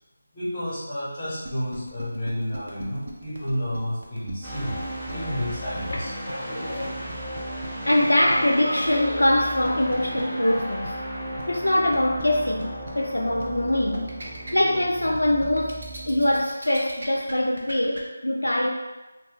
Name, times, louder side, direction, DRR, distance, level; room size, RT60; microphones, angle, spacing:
voice 1, 0.3-6.1, equal, 25° left, -8 dB, 1.1 m, -31 dB
sound 1, 1.4-18.0, right 1 dB, 55° right, 0.6 m, -40 dB
sound 2, 4.4-16.4, right 1 dB, 15° right, 0.5 m, -35 dB
voice 2, 5.9-7.1 7.9-11.0 11.5-14.1 14.5-15.8 16.1-18.7, left 1 dB, 85° left, 1 dB, 0.3 m, -23 dB
2.6 x 2.2 x 3.3 m, 1.1 s
figure-of-eight pair, 165°, 0 cm